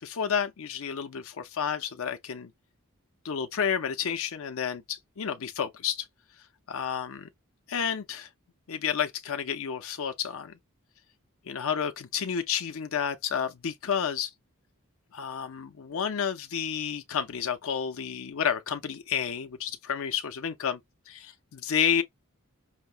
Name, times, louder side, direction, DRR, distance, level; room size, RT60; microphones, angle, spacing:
voice 1, 0.0-2.5 3.2-6.1 6.7-7.3 7.7-8.3 8.7-10.5 11.5-14.3 15.1-20.8 21.1-22.0, left 7 dB, 70° left, 0.6 m, -30 dB
5.6 x 2.1 x 2.5 m
head